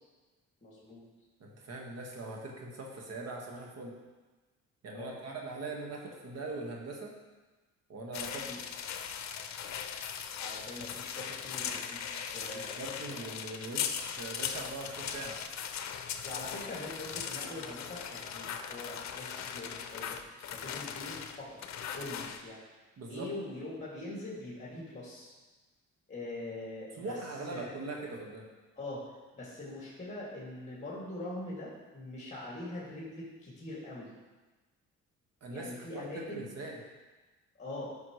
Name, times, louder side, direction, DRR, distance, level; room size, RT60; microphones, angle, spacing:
voice 1, 0.6-1.0 4.9-5.1 8.5-8.6 10.4-12.8 13.0-13.1 15.3-15.5 16.2-20.2 20.5-21.6 21.9-22.6 23.1-25.3 26.1-27.1 27.5-27.8 28.8-29.0 29.3-34.1 35.5-36.5 37.6-37.9, left 2 dB, 20° left, -6 dB, 2.4 m, -43 dB
voice 2, 1.4-4.0 4.8-7.1 7.9-8.5 12.5-15.4 23.0-23.3 27.0-28.5 35.4-36.8, right 2 dB, 55° right, 0 dB, 1.7 m, -41 dB
sound 1, 8.1-22.4, left 8 dB, 65° left, 0.7 m, -39 dB
10.5 x 5.9 x 3.2 m, 1.2 s
cardioid pair, 90°, 30 cm